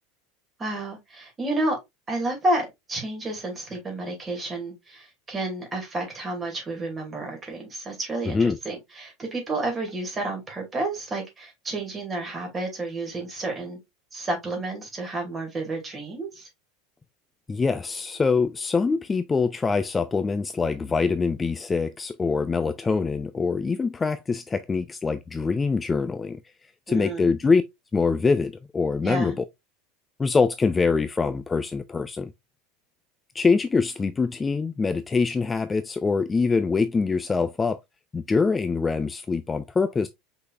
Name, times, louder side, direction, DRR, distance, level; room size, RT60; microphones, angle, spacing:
voice 1, 0.6-1.8 2.1-13.8 14.1-16.5 26.9-27.3 29.0-29.3, right 2 dB, 20° right, 2.5 m, -30 dB
voice 2, 8.3-8.6 17.5-26.4 26.9-27.6 27.9-29.4 30.2-32.3 33.3-37.8 38.1-40.1, left 4 dB, 15° left, 0.3 m, -24 dB
5.2 x 4.0 x 2.4 m
figure-of-eight pair, 80°, 0 cm